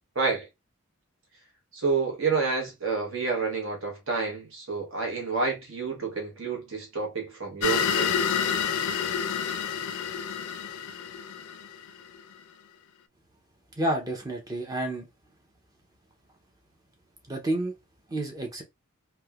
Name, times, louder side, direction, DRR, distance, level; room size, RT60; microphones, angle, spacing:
voice 1, 0.1-0.5 1.7-8.2, right 4 dB, 60° right, 0.9 m, -29 dB
sound 1, 7.6-12.2, left 7 dB, 90° left, 0.4 m, -28 dB
voice 2, 13.8-15.1 17.3-17.7 18.1-18.6, right 1 dB, 15° right, 0.5 m, -29 dB
3.0 x 2.1 x 2.3 m
head